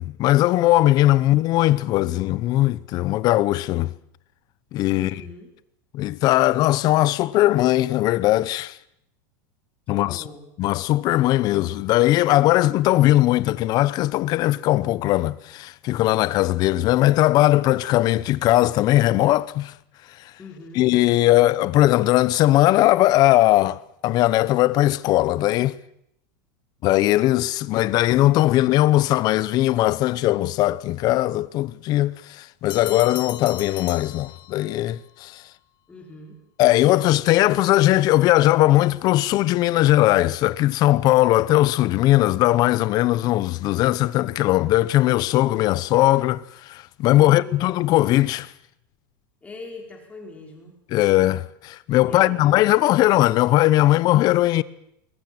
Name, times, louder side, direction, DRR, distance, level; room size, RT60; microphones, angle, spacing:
voice 1, 0.0-3.9 4.7-5.1 5.9-8.8 9.9-10.2 10.6-19.7 20.8-25.8 26.8-35.4 36.6-48.5 50.9-54.6, left 16 dB, 35° left, 0.8 m, -19 dB
voice 2, 4.9-5.5 9.9-10.5 20.4-20.9 35.9-36.4 47.3-47.7 49.4-50.8 52.0-52.6, left 3 dB, 10° left, 5.1 m, -41 dB
sound 1, 32.7-34.9, left 12 dB, 85° left, 1.8 m, -37 dB
21.5 x 19.5 x 7.8 m
supercardioid pair, 150°, 11 cm